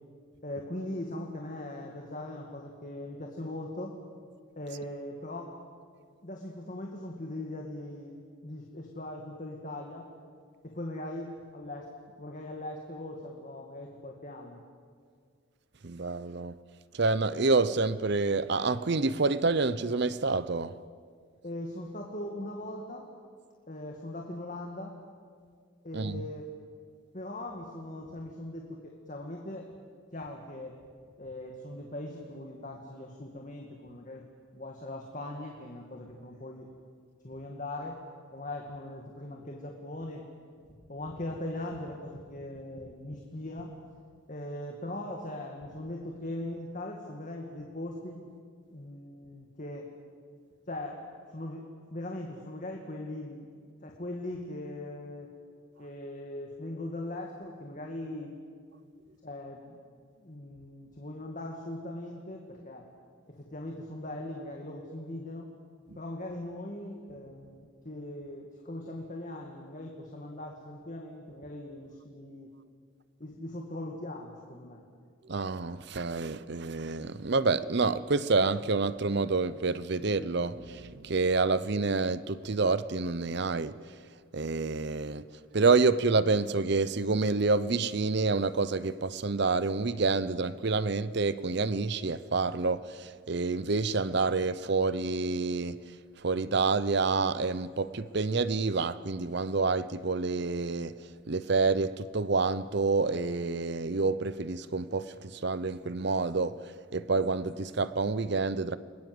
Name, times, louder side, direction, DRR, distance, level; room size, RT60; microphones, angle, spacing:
voice 1, 0.4-4.0 4.6-5.5 6.2-8.1 8.4-10.1 10.6-11.9 12.2-14.6 21.4-23.1 23.7-24.9 25.8-26.5 27.1-29.7 30.1-30.8 31.2-34.2 34.5-36.7 37.2-38.0 38.3-40.3 40.9-43.7 44.3-48.2 48.7-49.9 50.7-51.0 51.3-53.5 53.8-55.3 55.8-58.3 59.2-59.8 60.2-62.8 63.3-65.5 66.0-72.5 73.2-74.8, left 1 dB, 35° left, 2.2 m, -40 dB
voice 2, 15.8-16.6 16.9-20.7 25.9-26.2 65.9-66.0 75.3-83.7 84.3-85.2 85.5-95.8 96.2-100.9 101.3-108.8, right 3 dB, 50° right, 0.7 m, -28 dB
30.0 x 21.0 x 7.9 m
head